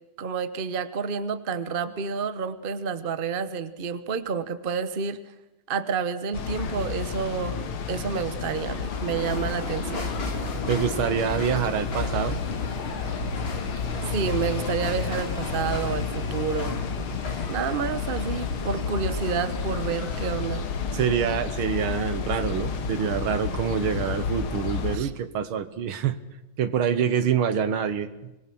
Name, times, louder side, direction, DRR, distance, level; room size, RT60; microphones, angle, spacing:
voice 1, 0.2-5.2 5.7-7.6 7.9-10.0 14.1-16.8 17.5-20.6 24.9-25.1, right 6 dB, 35° right, 13 dB, 0.9 m, -29 dB
sound 1, 6.3-25.0, left 5 dB, 75° left, 2.4 m, -31 dB
sound 2, 8.9-20.3, left 2 dB, 30° left, 2.1 m, -36 dB
voice 2, 10.7-12.4 20.9-26.2 26.6-28.3, right 8 dB, 75° right, 12 dB, 2.0 m, -26 dB
25.5 x 20.0 x 6.1 m, 0.99 s
omnidirectional pair, 2.4 m